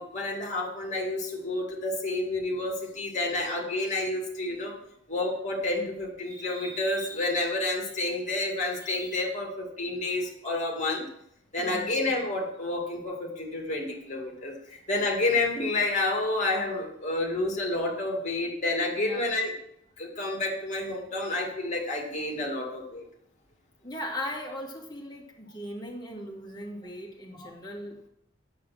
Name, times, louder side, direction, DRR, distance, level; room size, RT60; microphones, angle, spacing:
voice 1, 0.0-4.7 5.1-11.1 11.5-19.5 20.0-23.0 27.4-27.5, left 2 dB, 40° left, 1 dB, 2.4 m, -29 dB
voice 2, 11.6-11.9 19.0-19.3 23.8-28.1, left 1 dB, 20° left, -3 dB, 2.4 m, -38 dB
8.4 x 7.3 x 6.1 m, 0.74 s
head